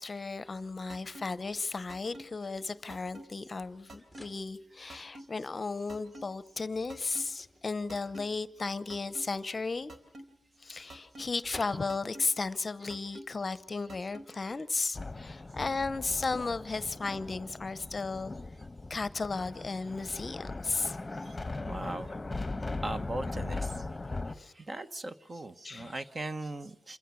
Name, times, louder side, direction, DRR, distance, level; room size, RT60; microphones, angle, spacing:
voice 1, 0.0-9.9 10.6-18.3 18.9-21.1 24.3-24.5 25.6-26.0, left 3 dB, 35° left, 0.8 m, -35 dB
sound 1, 0.9-1.2 1.9-2.2 2.9-3.2 3.9-4.2 4.9-5.2 5.9-6.2 6.9-7.2 7.9-8.2 8.9-9.2 9.9-10.2 10.9-11.2 11.9-12.2 12.9-13.2 13.9-14.2, right 1 dB, 60° right, 3.6 m, -46 dB
sound 2, 3.1-14.2, equal, 10° right, 2.4 m, -58 dB
sound 3, 14.9-24.4, left 3 dB, 20° left, 1.4 m, -39 dB
voice 2, 21.6-22.1 22.8-23.8 24.6-27.0, right 2 dB, 35° right, 1.2 m, -39 dB
27.0 x 16.0 x 7.2 m
wide cardioid pair, 110°, 0 cm